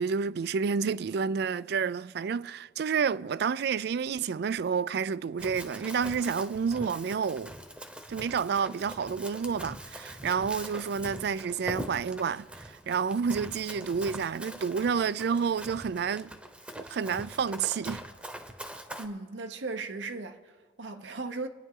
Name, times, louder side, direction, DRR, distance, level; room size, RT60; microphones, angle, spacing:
voice 1, 0.0-7.5 8.1-16.3 16.8-18.1, right 6 dB, 60° right, 0.3 m, -29 dB
Run, 5.4-19.1, equal, 5° right, 0.9 m, -43 dB
voice 2, 19.0-21.5, right 3 dB, 80° right, 0.9 m, -37 dB
26.0 x 9.8 x 3.8 m
head